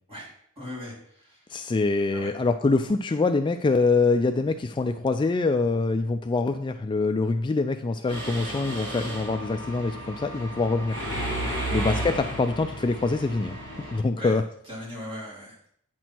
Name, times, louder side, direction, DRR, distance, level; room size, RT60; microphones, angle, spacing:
voice 1, 0.6-1.4 2.1-2.3 11.4-11.7 14.2-14.3 14.7-15.6, left 1 dB, 25° right, -6 dB, 3.7 m, -39 dB
voice 2, 1.5-11.0 11.7-13.6 13.9-14.4, left 3 dB, 20° left, 7 dB, 0.3 m, -24 dB
Mechanisms, 8.1-14.0, right 1 dB, 55° right, 3.7 m, -33 dB
9.1 x 6.1 x 4.5 m, 0.67 s
head